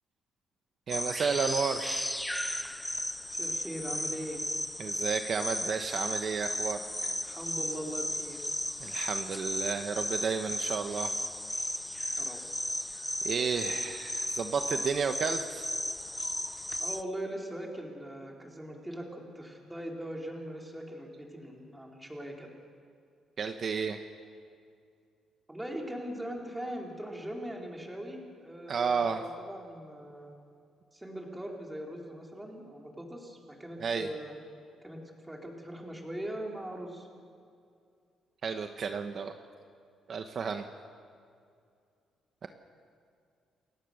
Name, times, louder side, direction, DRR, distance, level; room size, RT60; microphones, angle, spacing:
sound 1, 0.9-17.0, left 1 dB, 5° left, 0.8 m, -35 dB
voice 1, 0.9-2.1 4.8-7.1 8.8-11.1 13.2-15.7 23.4-24.0 28.7-29.2 33.8-34.1 38.4-39.3 40.1-40.7 42.4-42.5, right 5 dB, 50° right, 6 dB, 1.1 m, -32 dB
voice 2, 3.3-4.4 7.2-8.5 12.2-12.4 16.8-22.5 25.5-30.3 30.9-34.3 34.8-35.0 35.3-37.1, right 1 dB, 10° right, 0 dB, 4.1 m, -40 dB
29.0 x 16.5 x 6.6 m, 2.4 s
cardioid pair, 90°, 0 cm